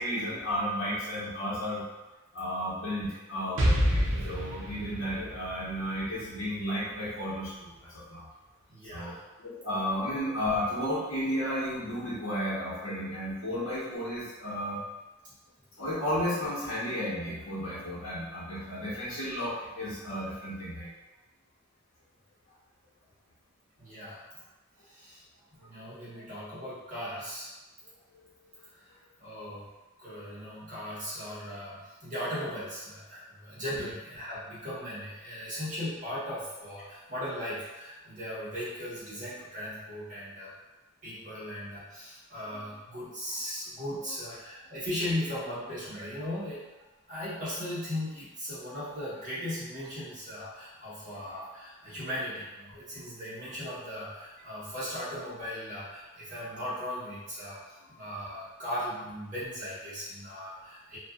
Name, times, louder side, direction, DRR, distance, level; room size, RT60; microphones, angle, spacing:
voice 1, 0.0-1.8 2.3-8.2 8.9-9.2 9.4-14.8 15.8-20.9 33.7-33.9 51.1-51.2, equal, 70° left, -8 dB, 1.0 m, -33 dB
Explosion, 3.6-7.3, equal, 70° right, 0.5 m, -29 dB
voice 2, 8.7-9.2 23.8-24.4 24.8-25.2 25.5-27.5 28.6-29.7 30.0-40.5 41.0-46.6 47.1-61.0, left 1 dB, 40° right, -10 dB, 1.2 m, -38 dB
2.6 x 2.3 x 2.3 m, 1.1 s
head